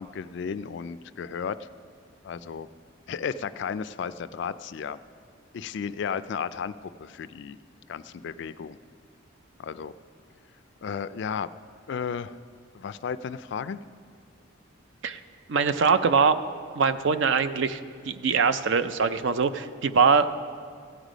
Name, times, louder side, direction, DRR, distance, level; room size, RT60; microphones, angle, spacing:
voice 1, 0.0-1.7 2.2-2.7 3.1-5.0 5.5-7.6 7.9-8.8 9.6-9.9 10.8-11.5 11.9-12.4 12.7-13.8, left 6 dB, 60° left, 15 dB, 0.3 m, -34 dB
voice 2, 15.5-16.4 16.8-17.8 18.1-20.3, right 5 dB, 60° right, 12 dB, 0.5 m, -22 dB
15.5 x 8.2 x 5.1 m, 2.2 s
head